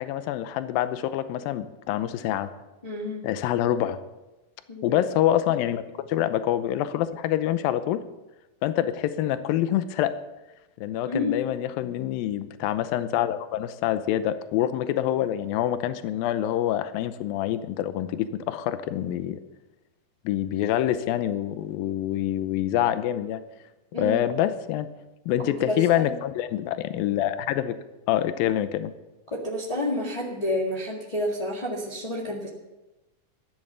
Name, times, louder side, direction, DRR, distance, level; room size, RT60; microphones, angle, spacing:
voice 1, 0.0-2.5 3.2-4.0 4.8-5.8 6.1-8.0 8.6-10.2 10.8-19.4 20.3-23.4 23.9-24.9 25.3-27.8 28.1-28.9, left 12 dB, 80° left, 11 dB, 2.5 m, -26 dB
voice 2, 2.8-3.2 4.7-5.0 11.0-11.4 23.9-24.2 25.4-26.1 29.3-32.5, left 1 dB, 20° left, -4 dB, 1.0 m, -29 dB
14.5 x 11.0 x 6.9 m, 1.0 s
omnidirectional pair, 4.3 m